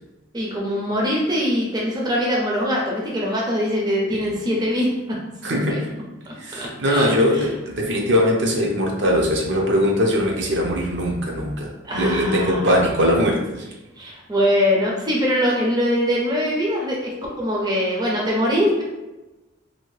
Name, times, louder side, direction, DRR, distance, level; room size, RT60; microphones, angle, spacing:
voice 1, 0.3-5.2 5.5-5.8 6.3-7.5 11.8-12.7 14.0-18.8, equal, 20° right, -3 dB, 0.5 m, -23 dB
voice 2, 5.4-5.9 6.4-11.7 12.0-13.6, equal, 60° right, -1 dB, 0.6 m, -21 dB
2.7 x 2.6 x 3.1 m, 1.0 s
head